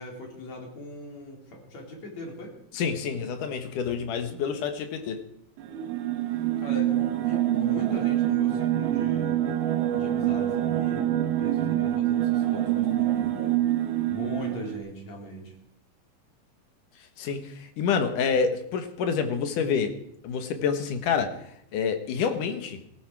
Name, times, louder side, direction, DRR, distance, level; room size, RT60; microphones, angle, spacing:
voice 1, 0.0-2.5 4.1-4.4 6.6-9.4 9.9-13.6 14.1-15.5, left 1 dB, 50° left, 0 dB, 4.8 m, -40 dB
voice 2, 2.7-5.2 17.2-19.9 20.2-21.3 21.7-22.8, left 6 dB, 65° left, 8 dB, 2.7 m, -27 dB
sound 1, 5.6-14.8, right 12 dB, 85° right, 3.1 m, -26 dB
18.0 x 14.5 x 4.7 m, 0.72 s
omnidirectional pair, 4.2 m